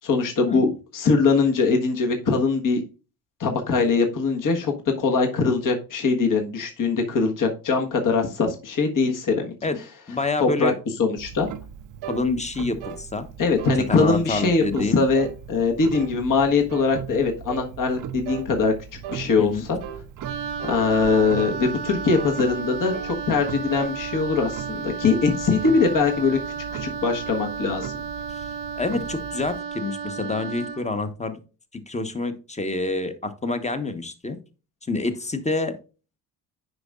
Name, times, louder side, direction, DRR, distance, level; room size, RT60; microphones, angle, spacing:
voice 1, 0.0-2.8 3.4-9.5 10.4-10.7 11.0-11.5 13.4-18.7 19.1-19.8 20.6-26.4 26.7-27.9, left 4 dB, 40° left, 2 dB, 1.4 m, -22 dB
voice 2, 10.1-10.8 12.1-13.3 13.9-15.0 19.4-19.6 28.3-31.4 31.7-34.4 34.9-35.8, left 3 dB, 15° left, 9 dB, 1.1 m, -27 dB
Clock, 11.2-29.6, right 8 dB, 40° right, 0.7 m, -40 dB
sound 1, 12.0-12.3 12.8-13.0 13.6-13.8 14.3-14.6 15.1-15.4 15.9-16.2 16.7-17.0 17.5-17.7 18.2-18.5 19.0-19.3 19.8-20.0 20.6-20.9 21.4-21.6 22.1-22.4 22.9-23.2 23.7-23.9, right 10 dB, 70° right, 1.2 m, -36 dB
Wind instrument woodwind instrument, 20.2-30.9, right 6 dB, 90° right, 0.8 m, -33 dB
9.6 x 5.2 x 2.4 m, 0.33 s
hypercardioid pair, 50°, 49 cm